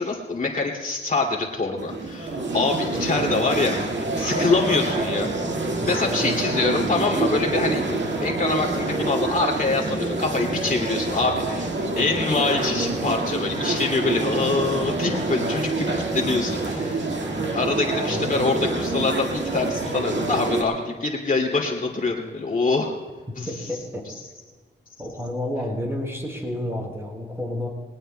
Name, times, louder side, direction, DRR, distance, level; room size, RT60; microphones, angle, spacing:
voice 1, 0.0-5.3 5.8-17.1 17.5-23.0 23.4-23.5, left 3 dB, 45° left, 0 dB, 2.4 m, -25 dB
sound 1, 1.8-20.6, right 3 dB, 65° right, 1.9 m, -27 dB
voice 2, 5.7-6.7 18.1-18.3 23.5-24.0 25.0-27.7, left 1 dB, 15° right, 0 dB, 4.4 m, -31 dB
21.5 x 18.5 x 2.2 m, 1.3 s
wide cardioid pair, 95°, 20 cm